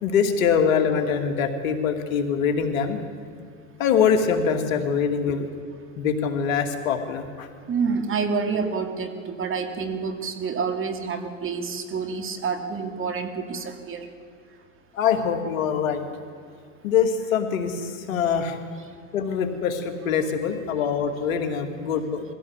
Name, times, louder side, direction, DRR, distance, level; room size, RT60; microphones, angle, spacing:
voice 1, 0.0-3.0 3.8-5.4 6.0-7.5 14.9-16.1 16.8-18.6 19.1-22.2, left 7 dB, 80° left, 5 dB, 2.6 m, -23 dB
voice 2, 7.7-14.1 21.4-21.6, right 5 dB, 30° right, 7 dB, 2.6 m, -28 dB
22.5 x 16.0 x 8.3 m, 2.3 s
supercardioid pair, 105°, 40 cm